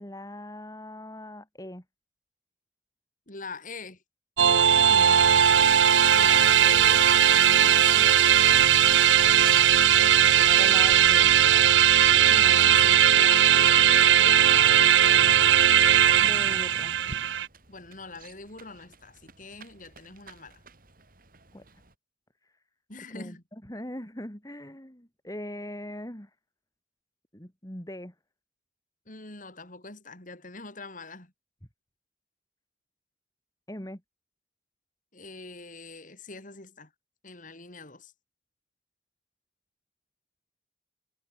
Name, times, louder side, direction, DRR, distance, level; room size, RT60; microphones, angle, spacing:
voice 1, 0.0-1.8 4.9-5.1 10.4-11.3 16.2-16.9 21.5-21.6 23.1-23.4 23.7-26.3 27.3-28.1 33.7-34.0, left 1 dB, 20° left, 3.3 m, -40 dB
voice 2, 3.3-4.0 6.1-8.4 12.0-15.5 17.7-20.6 22.9-23.4 29.1-31.3 35.1-36.9 37.2-38.1, left 3 dB, 45° left, 4.7 m, -42 dB
sound 1, 4.4-17.5, right 9 dB, 80° right, 0.8 m, -19 dB
Bird, 5.2-21.9, right 4 dB, 50° right, 3.1 m, -49 dB
head